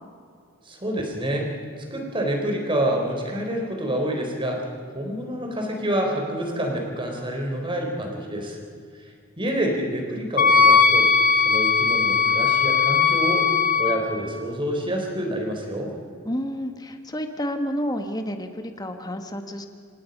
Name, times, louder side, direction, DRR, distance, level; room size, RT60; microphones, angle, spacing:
voice 1, 0.7-1.5 1.9-4.6 4.9-8.6 9.0-9.1 9.4-11.1 11.4-13.5 13.8-15.9, right 1 dB, 25° right, 2 dB, 4.0 m, -27 dB
Wind instrument woodwind instrument, 10.4-14.0, left 5 dB, 40° left, 1.2 m, -18 dB
voice 2, 16.2-19.7, equal, 20° left, 6 dB, 1.6 m, -30 dB
27.5 x 18.0 x 5.5 m, 2.2 s
head